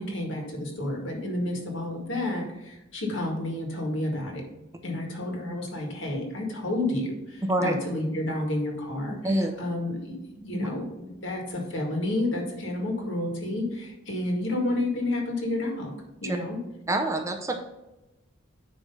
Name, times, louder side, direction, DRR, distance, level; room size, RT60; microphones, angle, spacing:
voice 1, 0.0-4.4 4.8-15.9 16.2-16.6, left 1 dB, 70° left, 1 dB, 1.9 m, -30 dB
voice 2, 7.4-7.7 9.2-9.5 16.3-16.4 16.9-17.6, right 1 dB, 15° right, 4 dB, 0.6 m, -25 dB
9.8 x 3.3 x 5.4 m, 0.97 s
head